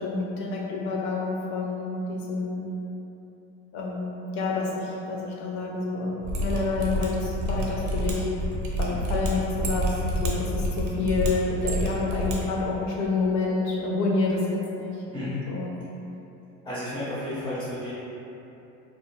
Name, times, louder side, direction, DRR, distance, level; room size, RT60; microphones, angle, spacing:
voice 1, 0.0-2.7 3.7-8.3 8.8-15.0 15.5-15.8, left 3 dB, 60° left, -3 dB, 0.6 m, -28 dB
Mechanisms, 6.2-12.4 12.6-12.7, equal, 60° right, 0.6 m, -28 dB
voice 2, 16.6-17.9, left 1 dB, 10° left, -10 dB, 0.4 m, -32 dB
2.6 x 2.0 x 3.0 m, 2.9 s
cardioid pair, 150°, 32 cm